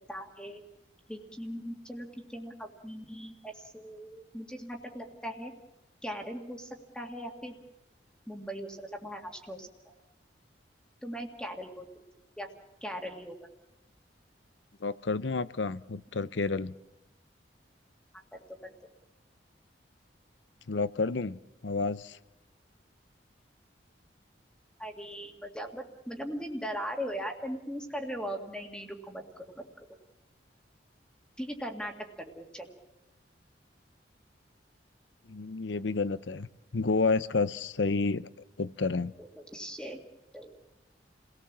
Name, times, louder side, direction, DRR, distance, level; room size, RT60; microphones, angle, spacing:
voice 1, 0.1-0.6 1.1-5.5 6.0-7.6 8.3-9.9 11.0-11.9 12.4-12.5 12.8-13.4 18.3-18.7 24.8-29.6 31.4-31.9 32.4-32.7 39.2-40.0 40.3-40.5, equal, 5° left, 2 dB, 2.0 m, -39 dB
voice 2, 14.8-16.7 20.7-21.4 21.6-22.2 35.3-36.5 36.7-38.3 38.6-39.1, left 4 dB, 85° left, 16 dB, 0.8 m, -30 dB
29.5 x 18.0 x 7.3 m, 0.94 s
head